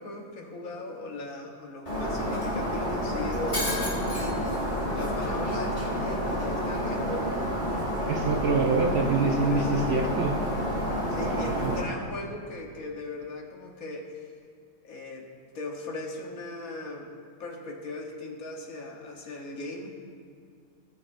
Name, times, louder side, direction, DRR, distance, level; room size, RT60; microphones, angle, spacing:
voice 1, 0.0-4.6 4.9-7.5 9.5-10.0 11.1-14.2 14.8-15.3 15.5-17.1 17.4-19.9, left 2 dB, 70° left, 1 dB, 1.5 m, -38 dB
Shatter, 1.9-11.8, equal, 50° left, 2.7 m, -29 dB
voice 2, 8.1-10.3 11.2-11.8, right 3 dB, 55° right, 2 dB, 0.8 m, -26 dB
18.5 x 6.2 x 2.6 m, 2.2 s
omnidirectional pair, 1.6 m